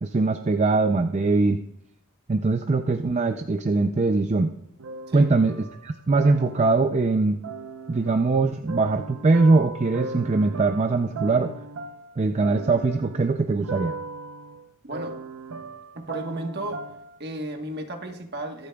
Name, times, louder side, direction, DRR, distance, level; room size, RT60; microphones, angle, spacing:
voice 1, 0.0-1.6 2.3-4.5 5.1-5.5 5.8-7.4 7.9-11.5 12.2-14.0, right 3 dB, 30° right, 6 dB, 0.4 m, -22 dB
sound 1, 4.8-7.0 7.4-17.2, right 3 dB, 80° right, 0.7 m, -38 dB
voice 2, 14.8-15.2 15.9-16.8 17.2-18.7, right 1 dB, 50° right, 4 dB, 1.3 m, -33 dB
24.0 x 8.4 x 2.3 m, 0.76 s
head